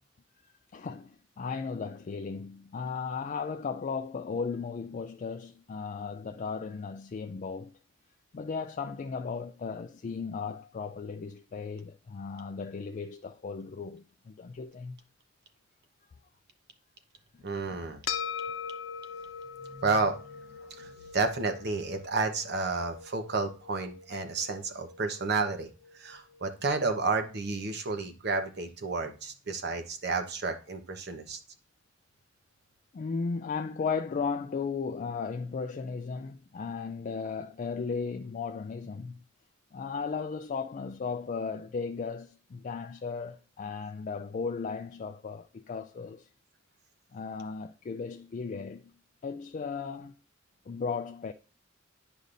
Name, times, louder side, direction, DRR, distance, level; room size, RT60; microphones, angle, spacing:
voice 1, 0.4-7.7 8.3-15.0 20.6-20.7 32.9-39.2 39.7-46.3 47.1-48.8 49.2-50.1 50.7-51.3, left 5 dB, 40° left, 0.3 m, -36 dB
voice 2, 17.4-18.0 19.6-25.7 25.9-31.4, right 3 dB, 55° right, 1.0 m, -31 dB
sound 1, 18.1-26.7, left 7 dB, 90° left, 0.7 m, -42 dB
9.8 x 5.2 x 2.6 m
head